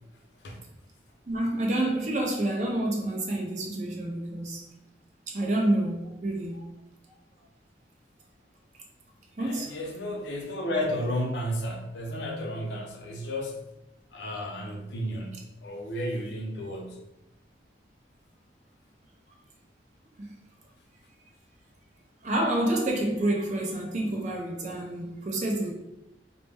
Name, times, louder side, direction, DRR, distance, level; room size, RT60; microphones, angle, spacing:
voice 1, 1.3-4.7 5.3-6.7 9.4-9.7 20.2-20.3 22.2-25.7, right 1 dB, 40° right, 0 dB, 0.4 m, -28 dB
voice 2, 9.4-13.6 14.1-17.0, equal, 75° left, 1 dB, 0.5 m, -33 dB
2.1 x 2.0 x 3.3 m, 0.89 s
head